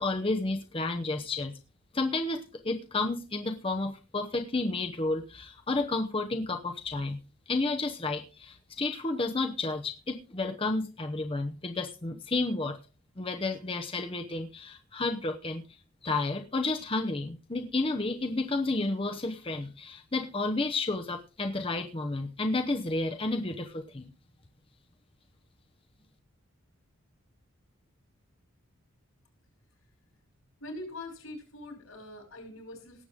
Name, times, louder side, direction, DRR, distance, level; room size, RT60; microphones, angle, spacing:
voice 1, 0.0-1.5 1.9-7.2 7.5-12.8 13.2-15.6 16.0-24.1, left 2 dB, 25° left, 5 dB, 0.8 m, -31 dB
voice 2, 30.6-33.1, left 1 dB, 80° left, 3 dB, 5.6 m, -43 dB
18.5 x 7.9 x 3.6 m, 0.32 s
head